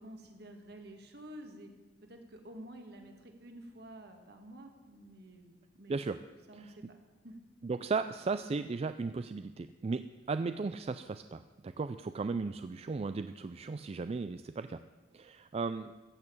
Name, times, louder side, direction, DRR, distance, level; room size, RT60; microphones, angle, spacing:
voice 1, 0.0-1.7 2.0-6.1 6.5-7.0 7.2-7.4, right 1 dB, 60° right, 4 dB, 1.9 m, -50 dB
voice 2, 7.6-14.8 15.1-15.9, right 4 dB, 35° right, 10 dB, 0.3 m, -36 dB
14.5 x 6.8 x 8.6 m, 1.2 s
head